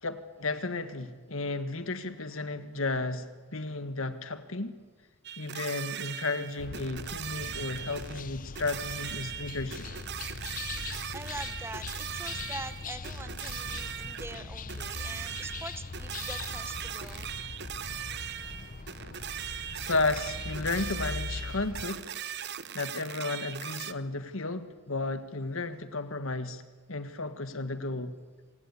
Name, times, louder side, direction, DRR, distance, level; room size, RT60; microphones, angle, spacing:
voice 1, 0.0-4.8 5.4-9.8 19.8-22.0 22.7-26.6 26.9-28.1, left 3 dB, 70° left, 10 dB, 1.7 m, -33 dB
sound 1, 5.2-8.2 8.6-23.9, right 9 dB, 55° right, 0.9 m, -39 dB
sound 2, 6.6-21.9, left 4 dB, 40° left, 0.8 m, -41 dB
voice 2, 11.1-17.3, right 2 dB, 10° right, 12 dB, 0.8 m, -43 dB
26.5 x 18.5 x 8.5 m, 1.3 s
head